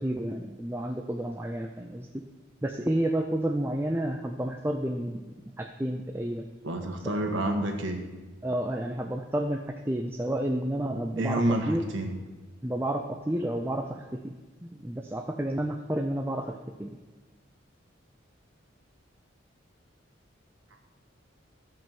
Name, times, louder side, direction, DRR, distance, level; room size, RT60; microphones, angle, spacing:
voice 1, 0.0-2.2 2.6-6.5 7.0-7.2 8.4-11.9 12.6-14.3 14.6-17.0, right 1 dB, 10° right, 3 dB, 0.5 m, -31 dB
voice 2, 6.6-8.0 11.2-12.1, right 1 dB, 75° right, 3 dB, 1.4 m, -28 dB
14.0 x 5.5 x 7.2 m, 1.2 s
head